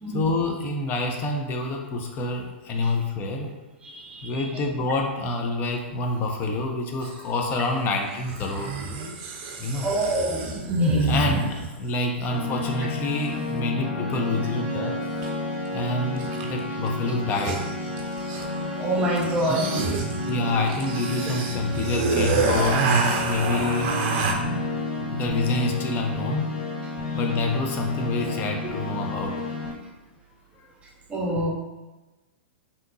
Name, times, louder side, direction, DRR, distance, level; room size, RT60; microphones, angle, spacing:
voice 1, 0.1-3.6 4.2-8.7 9.6-9.9 11.0-15.0 15.7-17.6 20.3-22.9 23.3-24.0 24.3-24.7 24.9-26.5 27.1-29.4, left 2 dB, 30° left, 2 dB, 0.5 m, -27 dB
voice 2, 3.8-4.4 9.8-11.1 18.8-19.8 31.1-31.5, right 1 dB, 20° right, -1 dB, 0.8 m, -27 dB
sound 1, 7.0-7.1 8.3-11.8 15.2-15.3 16.2-16.6 16.9-17.0 17.2-18.6 19.2-24.3, right 3 dB, 45° right, 0.5 m, -27 dB
sound 2, 12.3-29.7, left 2 dB, 50° left, 1.1 m, -31 dB
3.6 x 2.8 x 2.6 m, 1.1 s
hypercardioid pair, 105°, 6 cm